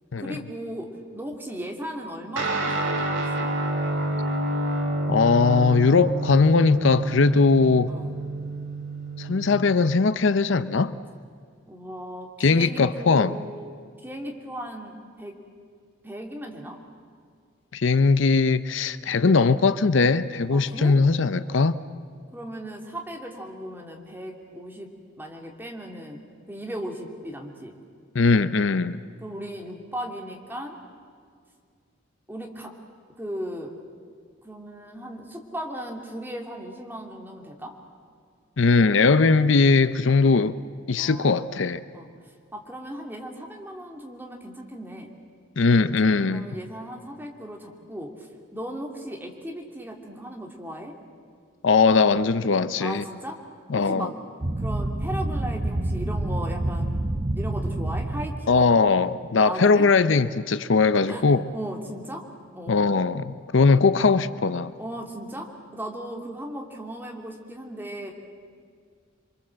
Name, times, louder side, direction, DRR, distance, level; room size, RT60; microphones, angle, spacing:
voice 1, 0.2-3.5 7.9-8.1 11.7-13.7 14.0-15.4 16.0-16.8 20.5-21.0 22.3-27.8 29.2-30.8 32.3-32.7 33.2-33.7 34.4-37.7 41.0-41.5 41.9-42.1 42.5-45.1 46.3-50.9 52.8-53.4 53.7-54.2 54.6-58.8 59.4-59.9 61.1-61.2 61.5-62.3 62.5-62.9 64.8-68.1, equal, 10° right, 1 dB, 2.7 m, -37 dB
Guitar, 2.4-10.1, right 1 dB, 70° right, 3.2 m, -28 dB
voice 2, 5.1-7.9 9.2-10.9 12.4-13.4 17.7-21.8 28.1-29.0 38.6-40.6 40.9-41.8 45.6-46.5 51.6-53.0 53.7-54.1 58.5-61.4 62.7-64.7, left 4 dB, 70° left, 14 dB, 0.6 m, -20 dB
sound 1, 54.4-58.6, right 1 dB, 30° right, 0.7 m, -28 dB
28.0 x 23.5 x 7.6 m, 2.1 s
head